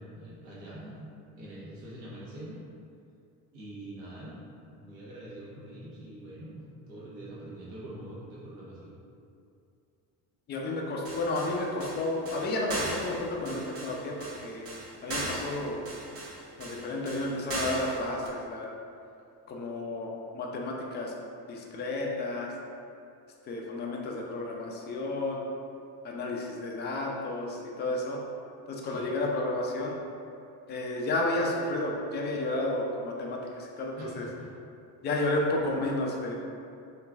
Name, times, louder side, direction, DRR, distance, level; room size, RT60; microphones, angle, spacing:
voice 1, 0.0-2.6 3.5-4.4 4.7-9.0 28.8-29.1 34.0-34.5, right 1 dB, 70° right, -7 dB, 1.1 m, -44 dB
voice 2, 10.5-14.6 15.0-15.8 16.6-18.7 19.5-21.1 21.5-22.5 23.5-25.4 26.0-28.2 28.7-29.9 30.7-34.2 35.0-36.3, left 2 dB, 25° left, -1 dB, 0.4 m, -32 dB
sound 1, 11.0-18.3, right 2 dB, 30° right, 0.6 m, -38 dB
3.0 x 2.5 x 2.3 m, 2.5 s
hypercardioid pair, 60°, 49 cm